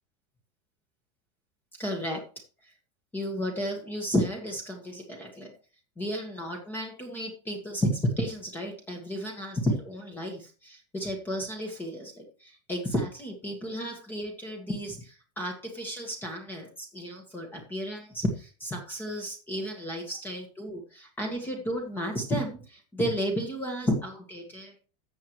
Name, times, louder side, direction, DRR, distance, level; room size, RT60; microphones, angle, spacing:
voice 1, 1.7-2.2 2.6-2.7 3.1-5.6 6.0-24.9, equal, 10° left, 2 dB, 1.6 m, -32 dB
13.5 x 7.6 x 3.1 m, 0.36 s
supercardioid pair, 170°, 18 cm